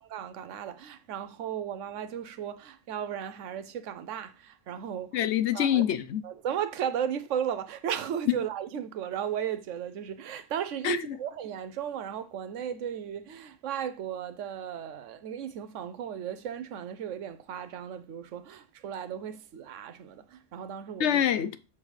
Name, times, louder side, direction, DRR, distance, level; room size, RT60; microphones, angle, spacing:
voice 1, 0.1-5.2 5.5-5.8 6.2-21.2, right 9 dB, 85° right, 1.0 m, -35 dB
voice 2, 5.1-6.2 8.3-8.4 10.8-11.2 21.0-21.6, left 10 dB, 70° left, 0.9 m, -26 dB
7.1 x 6.8 x 3.2 m
omnidirectional pair, 1.3 m